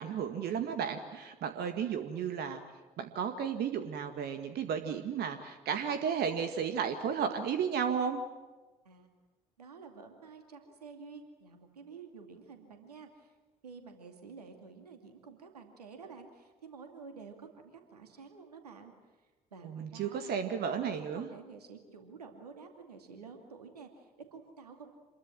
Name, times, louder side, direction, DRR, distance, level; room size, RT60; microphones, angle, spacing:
voice 1, 0.0-2.6 3.0-8.2 19.6-21.3, right 7 dB, 55° right, 8 dB, 1.9 m, -33 dB
voice 2, 9.6-13.3 13.6-18.9 19.5-20.4 20.7-24.9, right 5 dB, 85° right, 5 dB, 2.5 m, -50 dB
27.0 x 22.0 x 7.4 m, 1.2 s
figure-of-eight pair, 45°, 20 cm